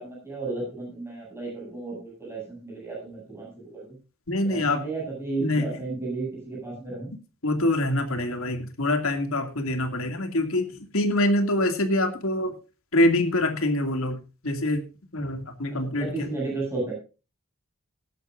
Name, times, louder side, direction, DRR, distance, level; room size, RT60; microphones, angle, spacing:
voice 1, 0.0-3.9 4.4-7.1 15.8-17.0, right 3 dB, 10° right, -4 dB, 8.0 m, -33 dB
voice 2, 4.3-4.8 5.4-5.8 7.4-12.5 12.9-14.2 14.4-14.8 15.1-16.3, left 1 dB, 80° left, 6 dB, 2.4 m, -25 dB
19.5 x 11.0 x 2.6 m, 0.32 s
head